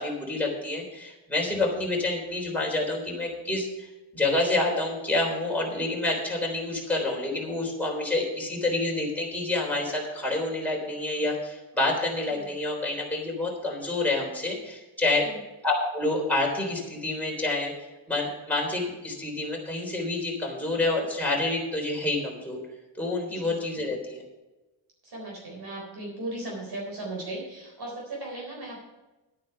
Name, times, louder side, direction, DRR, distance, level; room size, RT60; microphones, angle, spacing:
voice 1, 0.0-3.9 4.1-15.3 15.6-17.7 18.1-22.6 23.0-24.2, left 2 dB, 5° left, -2 dB, 3.5 m, -28 dB
voice 2, 12.1-12.5 15.2-15.4 23.3-23.6 25.0-28.8, right 2 dB, 55° right, -2 dB, 4.0 m, -37 dB
11.0 x 9.5 x 5.6 m, 1.1 s
wide cardioid pair, 165°, 47 cm